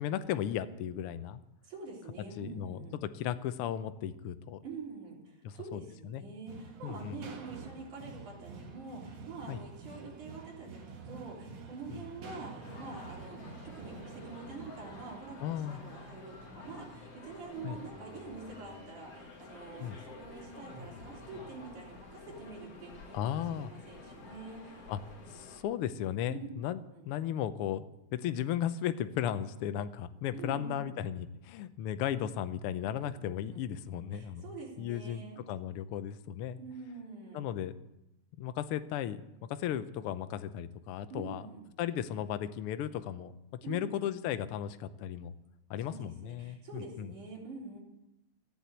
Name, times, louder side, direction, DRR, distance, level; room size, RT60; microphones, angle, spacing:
voice 1, 0.0-1.4 2.4-4.6 5.4-5.8 6.1-6.2 6.8-7.2 9.5-9.6 11.9-12.0 15.4-15.8 17.6-17.8 19.8-20.0 23.1-23.7 24.9-25.0 25.3-26.8 27.0-27.9 28.1-34.5 34.8-36.6 37.3-37.7 38.4-39.2 39.6-41.5 41.8-43.3 43.7-45.4 45.7-47.1, left 10 dB, 85° left, 11 dB, 1.2 m, -35 dB
voice 2, 1.6-3.0 4.6-24.9 26.3-26.5 26.9-27.1 30.3-31.0 33.0-33.1 33.5-33.7 34.1-35.4 36.6-37.5 41.1-41.6 43.6-44.0 45.8-47.8, right 4 dB, 85° right, -4 dB, 5.1 m, -46 dB
sound 1, 6.5-21.8, right 4 dB, 60° right, 2.6 m, -50 dB
sound 2, 12.6-25.6, left 3 dB, 55° left, 3.2 m, -50 dB
14.5 x 9.1 x 8.2 m, 0.89 s
omnidirectional pair, 3.4 m